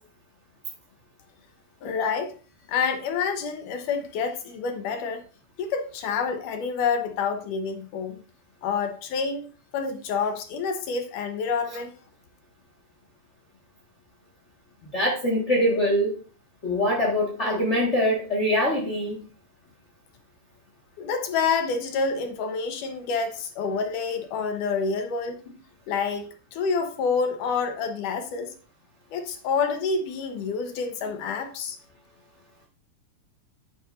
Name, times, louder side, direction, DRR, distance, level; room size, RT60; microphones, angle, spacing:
voice 1, 1.8-2.3 2.7-5.2 5.6-8.2 8.6-9.4 9.7-11.9 21.0-25.4 25.9-28.5 29.1-31.8, left 5 dB, 70° left, 6 dB, 2.4 m, -28 dB
voice 2, 14.9-16.1 16.6-19.2, equal, 50° left, -2 dB, 0.8 m, -23 dB
10.5 x 9.3 x 2.6 m, 0.38 s
omnidirectional pair, 4.1 m